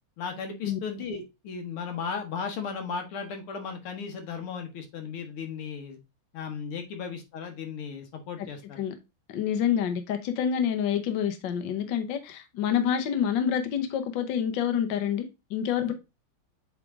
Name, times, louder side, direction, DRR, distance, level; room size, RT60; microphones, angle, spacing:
voice 1, 0.2-6.0 6.3-8.8 15.9-16.0, left 6 dB, 85° left, 2.0 m, -36 dB
voice 2, 9.3-15.9, left 8 dB, 65° left, 1.4 m, -27 dB
7.7 x 3.6 x 3.6 m
omnidirectional pair, 2.4 m